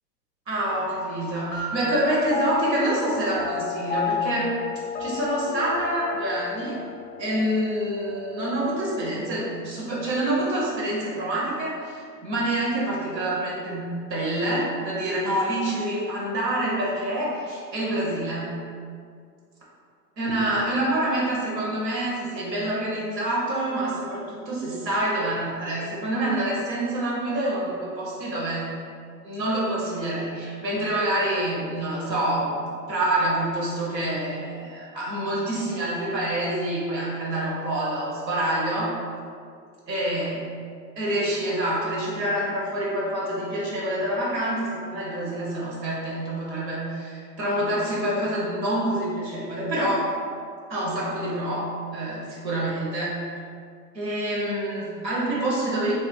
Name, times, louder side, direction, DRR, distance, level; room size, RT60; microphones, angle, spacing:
voice 1, 0.5-4.6 5.0-6.8 7.2-18.5 20.2-28.7 29.2-39.0 39.9-40.4 41.0-50.1 50.7-53.3 53.9-55.9, right 1 dB, 80° right, -6 dB, 1.0 m, -27 dB
sound 1, 0.7-9.5, left 6 dB, 20° left, 0.4 m, -33 dB
3.1 x 2.7 x 2.2 m, 2.2 s
hypercardioid pair, 100°, 50 cm